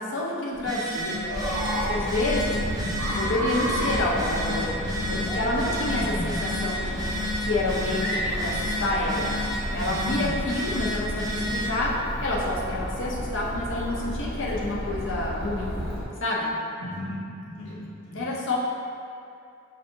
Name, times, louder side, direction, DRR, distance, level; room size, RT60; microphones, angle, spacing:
voice 1, 0.0-1.6 1.9-2.5 3.1-9.3 9.7-11.9 12.2-15.8 16.2-16.5 18.1-18.6, left 2 dB, 55° left, -4 dB, 0.7 m, -29 dB
Telephone, 0.5-11.8, equal, 15° right, 0.4 m, -32 dB
Chatter, 1.3-16.0, equal, 5° left, 0.8 m, -31 dB
voice 2, 2.5-2.9 6.0-6.4 10.0-10.3 16.8-18.3, equal, 80° left, -8 dB, 0.9 m, -35 dB
6.7 x 2.7 x 2.6 m, 2.5 s
head